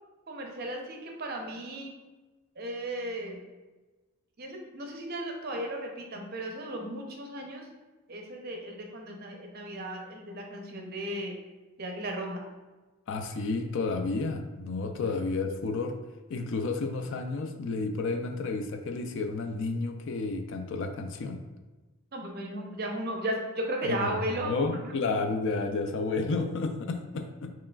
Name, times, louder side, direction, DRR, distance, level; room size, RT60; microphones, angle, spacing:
voice 1, 0.3-2.0 2.6-3.4 4.4-7.7 8.1-11.4 11.8-12.4 22.1-24.9, right 1 dB, 45° right, 2 dB, 0.6 m, -35 dB
voice 2, 13.1-16.0 16.3-21.4 24.0-24.1 24.4-27.5, left 3 dB, 55° left, 7 dB, 0.3 m, -31 dB
4.7 x 3.0 x 2.3 m, 1.2 s
head